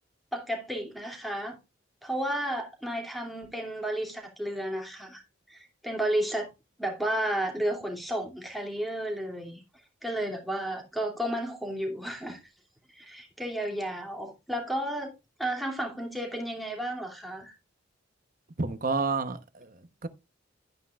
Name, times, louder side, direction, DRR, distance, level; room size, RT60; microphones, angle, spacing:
voice 1, 0.3-1.6 2.0-5.2 5.5-6.5 6.8-9.6 10.0-12.4 12.9-15.1 15.4-17.5, right 1 dB, ahead, 2.6 m, -32 dB
voice 2, 18.6-20.1, right 4 dB, 45° right, 1.0 m, -30 dB
12.5 x 9.7 x 2.4 m
head